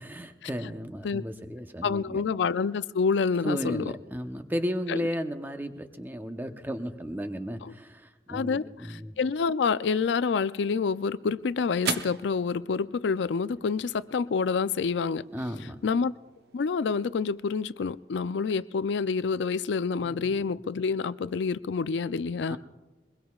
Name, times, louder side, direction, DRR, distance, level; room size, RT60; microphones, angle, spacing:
voice 1, 0.0-2.2 3.4-9.1 15.3-15.8 20.0-20.4 22.5-22.6, equal, 10° right, 0.8 m, -34 dB
voice 2, 1.8-3.9 4.9-5.0 7.6-7.7 8.3-15.2 15.8-16.1 16.5-22.6, left 5 dB, 75° left, 0.4 m, -28 dB
sound 1, 10.6-19.1, right 6 dB, 60° right, 0.7 m, -42 dB
22.5 x 21.5 x 2.4 m
head